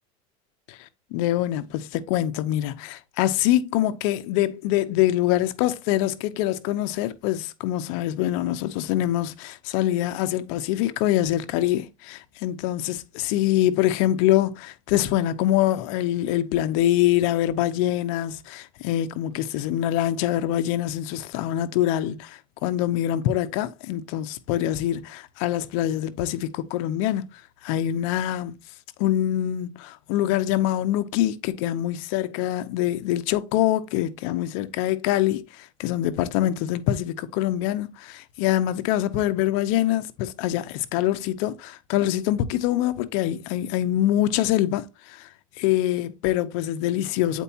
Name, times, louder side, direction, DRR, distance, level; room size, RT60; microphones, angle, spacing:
voice 1, 0.7-27.3 27.6-28.6 29.0-45.3 45.6-47.4, left 13 dB, 70° left, 0.8 m, -24 dB
8.1 x 4.5 x 2.9 m
supercardioid pair, 120°, 18 cm